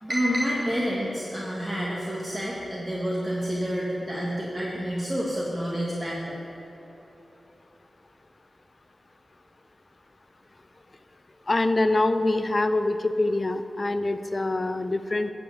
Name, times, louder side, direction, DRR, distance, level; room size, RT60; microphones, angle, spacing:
voice 1, 0.0-6.5, equal, 20° right, -6 dB, 1.8 m, -28 dB
voice 2, 11.5-15.3, left 2 dB, 45° left, 10 dB, 0.5 m, -24 dB
10.5 x 5.0 x 7.8 m, 3.0 s
cardioid pair, 40°, 0 cm